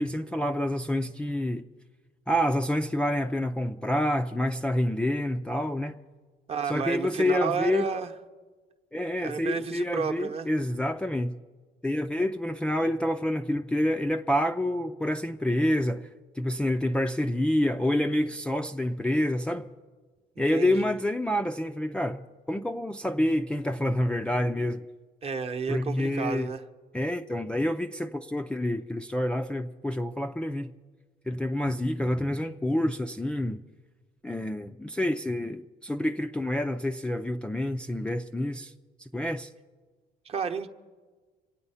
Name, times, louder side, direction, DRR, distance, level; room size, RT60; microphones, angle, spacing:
voice 1, 0.0-1.6 2.3-6.0 6.7-7.9 8.9-11.3 11.8-16.1 16.4-19.7 20.4-24.8 25.7-26.5 26.9-30.7 31.3-33.6 34.2-38.7 39.0-39.5, left 1 dB, 5° left, 0.4 m, -28 dB
voice 2, 6.5-8.1 9.2-10.5 20.5-20.9 25.2-26.6 40.2-40.7, right 6 dB, 35° right, 0.9 m, -31 dB
26.0 x 8.9 x 5.6 m
cardioid pair, 110°, 17 cm